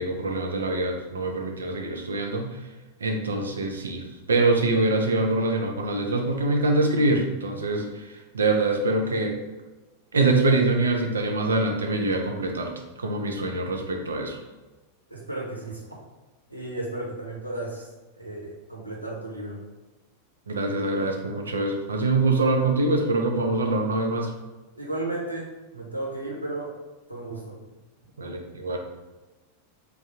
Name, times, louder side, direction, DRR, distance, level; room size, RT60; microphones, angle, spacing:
voice 1, 0.0-2.6 3.0-9.4 10.1-12.7 13.0-14.4 20.5-24.3 28.2-28.8, right 2 dB, 70° right, 2 dB, 0.6 m, -24 dB
voice 2, 15.1-15.8 16.5-17.9 18.2-19.6 24.8-26.8 27.1-27.5, right 2 dB, 90° right, -4 dB, 1.0 m, -34 dB
3.6 x 2.3 x 4.3 m, 1.2 s
figure-of-eight pair, 90°, 0 cm